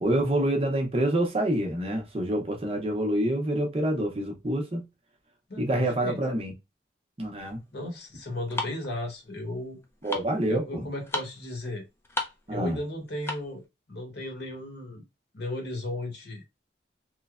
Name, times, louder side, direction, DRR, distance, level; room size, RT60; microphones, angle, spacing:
voice 1, 0.0-4.8 5.6-6.5 7.2-7.6 10.0-10.9 12.5-12.8, right 1 dB, 30° right, 0.6 m, -27 dB
voice 2, 5.5-6.2 7.7-9.8 10.5-11.8 12.5-13.6 13.9-15.0 15.3-16.5, left 1 dB, 65° left, 1.0 m, -35 dB
sound 1, 7.4-13.6, left 2 dB, 15° left, 0.4 m, -37 dB
3.1 x 2.1 x 2.3 m
head